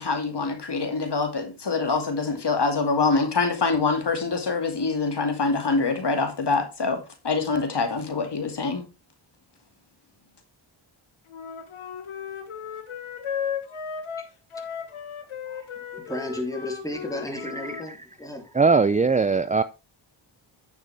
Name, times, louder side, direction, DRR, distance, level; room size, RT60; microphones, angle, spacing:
voice 1, 0.0-8.8, left 4 dB, 55° left, 2.4 m, -25 dB
Wind instrument woodwind instrument, 11.3-17.9, left 7 dB, 85° left, 1.5 m, -35 dB
voice 2, 14.5-15.0 15.5-18.6, left 1 dB, 5° left, 3.2 m, -35 dB
voice 3, 18.5-19.6, right 4 dB, 15° right, 0.4 m, -19 dB
9.9 x 6.8 x 3.4 m
cardioid pair, 60°, 48 cm